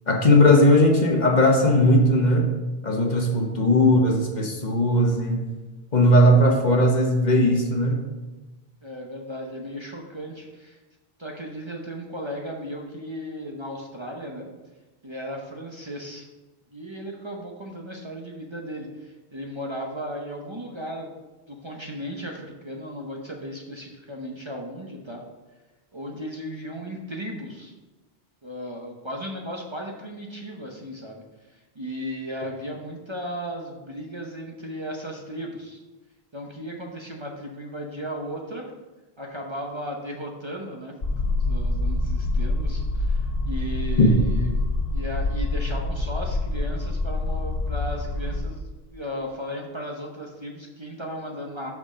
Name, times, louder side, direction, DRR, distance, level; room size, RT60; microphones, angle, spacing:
voice 1, 0.1-2.5 2.8-5.4 5.9-8.0 44.0-44.1, left 1 dB, 45° left, 1 dB, 1.2 m, -18 dB
voice 2, 3.1-3.6 8.8-10.8 11.2-14.5 15.0-16.3 16.7-21.1 21.5-25.2 25.9-27.7 28.4-35.8 36.3-38.7 39.2-41.0 41.3-44.6 44.9-51.7, equal, 30° right, 0 dB, 0.9 m, -36 dB
sound 1, 41.0-48.4, left 2 dB, 70° left, 1.6 m, -26 dB
6.2 x 6.1 x 5.1 m, 1.1 s
omnidirectional pair, 1.0 m